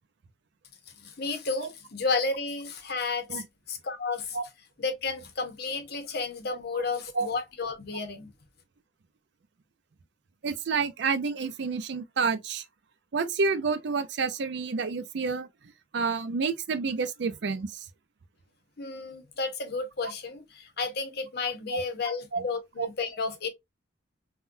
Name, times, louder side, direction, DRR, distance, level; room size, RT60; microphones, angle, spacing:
voice 1, 1.0-4.4 4.8-8.3 18.8-23.5, left 4 dB, 55° left, 0.8 m, -32 dB
voice 2, 10.4-12.6 13.1-15.5 15.9-17.9 21.7-21.8 22.3-22.5 22.8-22.9, right 4 dB, 65° right, 0.5 m, -29 dB
3.6 x 2.2 x 2.4 m
head